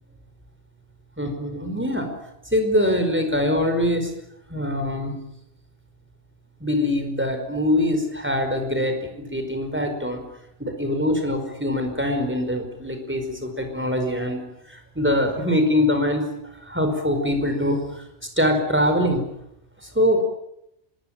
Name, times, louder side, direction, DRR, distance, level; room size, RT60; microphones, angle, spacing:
voice 1, 1.2-2.1 2.5-4.1 4.5-5.1 6.6-10.2 10.6-14.4 14.7-16.2 16.6-17.8 18.4-19.2 19.9-20.2, left 1 dB, 10° right, 5 dB, 5.1 m, -23 dB
24.5 x 21.5 x 9.1 m, 0.80 s
omnidirectional pair, 1.2 m